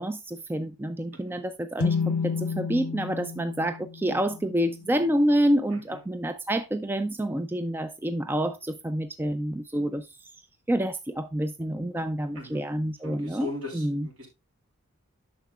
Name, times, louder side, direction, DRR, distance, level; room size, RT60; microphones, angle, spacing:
voice 1, 0.0-10.1 10.7-14.1, right 1 dB, 10° right, 0.3 m, -28 dB
sound 1, 1.8-5.4, left 5 dB, 80° left, 0.6 m, -31 dB
voice 2, 13.0-14.3, left 2 dB, 70° right, 3.4 m, -39 dB
9.5 x 6.5 x 2.3 m
head